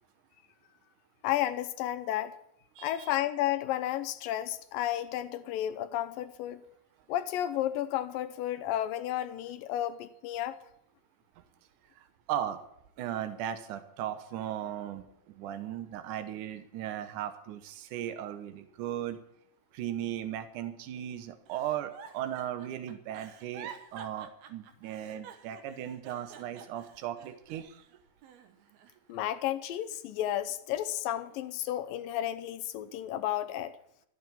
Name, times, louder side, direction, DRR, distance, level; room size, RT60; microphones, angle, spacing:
voice 1, 1.2-2.4 2.8-6.6 7.1-10.6 29.1-33.8, left 12 dB, 80° left, 2.3 m, -32 dB
voice 2, 2.8-3.1 12.3-12.6 13.0-19.2 19.7-27.8, right 11 dB, 65° right, 2.4 m, -37 dB
Giggle, 21.5-27.8 28.2-29.2 29.6-30.8 31.3-31.6, right 7 dB, 90° right, 3.2 m, -50 dB
13.5 x 7.7 x 8.6 m
omnidirectional pair, 4.3 m